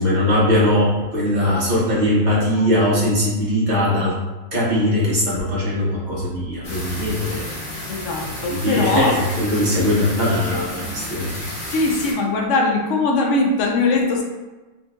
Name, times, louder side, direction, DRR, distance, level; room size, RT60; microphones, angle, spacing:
voice 1, 0.0-4.2 4.5-7.4 8.2-11.4, left 1 dB, 40° right, -7 dB, 1.2 m, -20 dB
sound 1, 6.6-12.1, left 1 dB, 45° left, 1.5 m, -32 dB
voice 2, 7.9-9.2 10.5-11.0 11.7-14.2, left 3 dB, 80° left, 1 dB, 1.0 m, -21 dB
4.3 x 3.1 x 2.6 m, 1.2 s
omnidirectional pair, 1.2 m